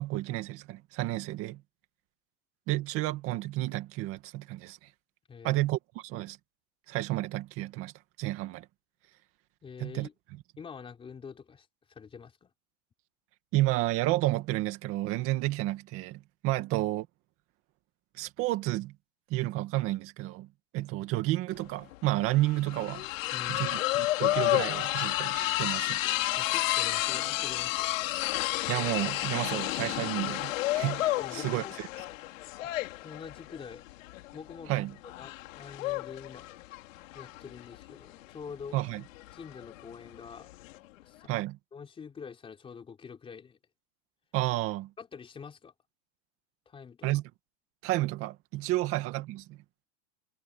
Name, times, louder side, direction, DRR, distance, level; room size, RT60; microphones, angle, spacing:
voice 1, 0.0-1.6 2.7-4.8 5.4-6.4 6.9-8.7 9.8-10.1 13.5-17.1 18.2-18.9 19.3-20.5 20.7-23.1 23.5-26.0 28.7-31.9 34.7-34.9 38.7-39.0 41.3-41.6 44.3-44.9 47.0-47.2 47.8-49.6, right 17 dB, 35° right, 2.1 m, -31 dB
voice 2, 5.3-5.6 9.6-10.1 10.6-12.5 23.3-23.7 26.4-28.2 31.2-31.8 33.0-33.8 34.3-34.7 35.0-36.5 37.1-38.8 39.3-40.5 41.0-41.3 41.7-43.6 45.0-45.7 46.7-47.1, left 6 dB, 15° left, 3.9 m, -46 dB
sound 1, 21.6-21.7 21.9-40.8, left 17 dB, 85° left, 3.7 m, -31 dB
supercardioid pair, 175°, 38 cm